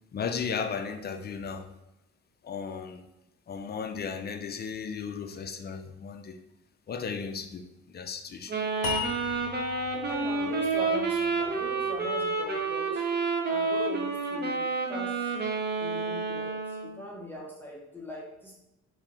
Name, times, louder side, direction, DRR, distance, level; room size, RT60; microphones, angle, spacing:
voice 1, 0.1-1.7 2.4-3.0 3.5-6.4 6.9-8.6, left 6 dB, 35° left, 7 dB, 0.4 m, -35 dB
Wind instrument woodwind instrument, 8.5-17.0, right 4 dB, 35° right, 0.8 m, -29 dB
sound 1, 8.8-12.0, left 5 dB, 70° left, 0.7 m, -37 dB
voice 2, 10.1-13.0 13.5-15.3 15.8-18.5, equal, 5° left, -3 dB, 0.8 m, -41 dB
3.4 x 2.7 x 3.8 m, 0.90 s
cardioid pair, 90°, 30 cm